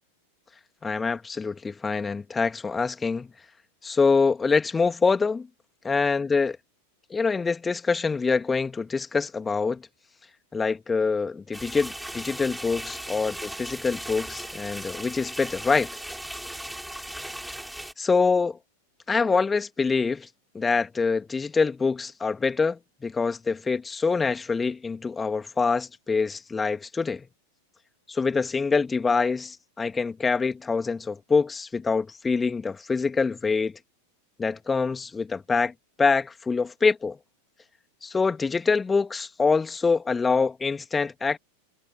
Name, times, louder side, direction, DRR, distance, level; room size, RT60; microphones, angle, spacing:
voice 1, 0.8-3.3 3.8-5.5 5.8-6.6 7.1-9.8 10.5-15.9 18.0-18.6 19.1-20.3 20.5-27.3 28.1-33.8 34.4-35.7 36.0-37.2 38.0-41.4, left 4 dB, 15° left, 2.5 m, -25 dB
sound 1, 11.5-17.9, right 1 dB, ahead, 4.4 m, -37 dB
figure-of-eight pair, 90°, 0 cm